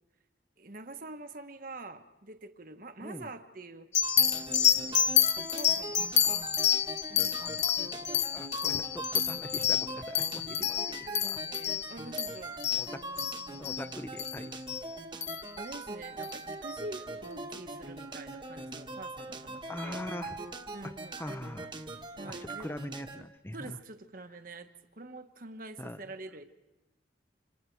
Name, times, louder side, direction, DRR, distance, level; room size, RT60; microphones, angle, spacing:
voice 1, 0.6-3.9 4.3-5.1 5.4-6.5 7.1-7.4 10.6-10.7 11.0-14.0 15.6-20.0 20.7-21.3 22.2-22.7 23.5-26.4, right 2 dB, 45° right, 7 dB, 1.3 m, -46 dB
sound 1, 3.9-13.8 14.2-14.4 14.7-14.8 15.2-15.5 16.2-16.3, left 9 dB, 35° left, 1.0 m, -28 dB
sound 2, 4.0-23.2, right 2 dB, 25° right, 1.4 m, -42 dB
voice 2, 6.2-6.6 7.4-7.6 7.9-11.4 12.7-13.0 13.6-14.5 19.7-20.4 20.8-20.9 21.2-21.7 22.3-23.8 25.8-26.0, left 1 dB, 10° left, 11 dB, 0.7 m, -42 dB
28.0 x 27.5 x 4.7 m, 1.0 s
head